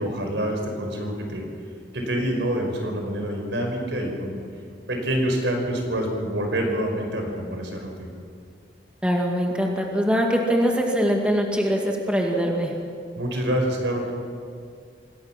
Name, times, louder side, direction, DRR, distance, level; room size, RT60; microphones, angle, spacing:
voice 1, 0.0-1.4 1.9-4.4 4.9-8.1 13.2-14.1, right 1 dB, 85° right, 2 dB, 5.3 m, -26 dB
voice 2, 9.0-12.7, equal, 5° right, 0 dB, 2.1 m, -22 dB
26.5 x 19.0 x 6.0 m, 2.2 s
head